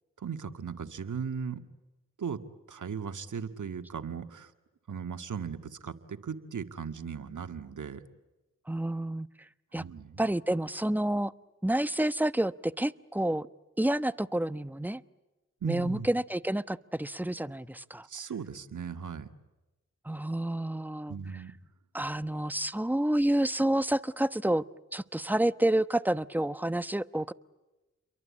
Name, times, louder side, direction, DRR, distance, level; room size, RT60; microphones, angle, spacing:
voice 1, 0.2-1.6 2.2-2.4 2.7-4.5 4.9-8.0 9.8-10.2 15.6-16.1 18.1-19.3 21.1-21.5, right 6 dB, 70° right, 8 dB, 1.9 m, -37 dB
voice 2, 8.7-9.3 9.7-9.8 10.2-11.3 11.6-13.5 13.8-15.0 15.6-18.1 20.0-21.4 21.9-24.6 24.9-27.3, right 1 dB, 5° right, 14 dB, 1.0 m, -29 dB
29.5 x 23.0 x 8.6 m, 1.1 s
cardioid pair, 45°, 31 cm